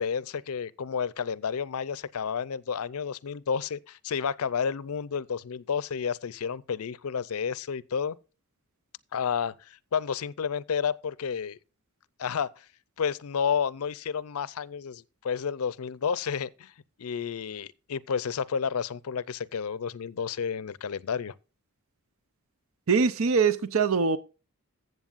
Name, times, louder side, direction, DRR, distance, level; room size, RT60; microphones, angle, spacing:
voice 1, 0.0-8.2 9.1-11.6 12.2-12.6 13.0-16.7 17.0-21.3, left 6 dB, 75° left, 0.5 m, -31 dB
voice 2, 22.9-24.2, right 5 dB, 65° right, 0.6 m, -23 dB
14.5 x 7.9 x 2.5 m
head